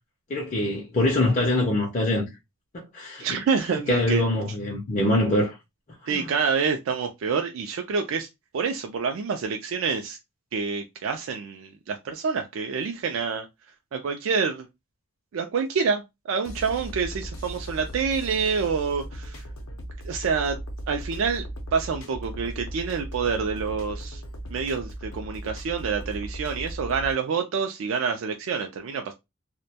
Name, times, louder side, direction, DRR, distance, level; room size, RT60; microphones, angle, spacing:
voice 1, 0.3-2.3 2.7-3.4 3.9-5.5 6.0-6.3, left 1 dB, 40° left, 0.4 m, -24 dB
voice 2, 3.2-4.2 6.1-8.3 8.5-10.2 10.5-13.5 13.9-14.7 15.3-16.0 16.3-19.4 20.0-20.6 20.9-21.4 21.7-24.2 24.5-29.1, right 5 dB, 75° right, 0.3 m, -27 dB
sound 1, 16.4-27.1, right 1 dB, 90° left, 0.6 m, -37 dB
2.1 x 2.1 x 2.7 m
head